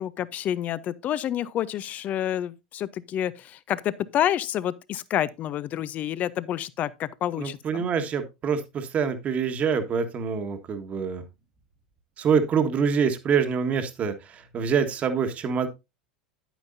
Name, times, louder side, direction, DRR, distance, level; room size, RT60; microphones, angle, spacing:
voice 1, 0.0-7.8, left 11 dB, 40° left, 0.7 m, -29 dB
voice 2, 7.4-11.2 12.2-15.7, right 6 dB, 35° right, 1.5 m, -25 dB
10.5 x 9.1 x 2.6 m
figure-of-eight pair, 80°, 4 cm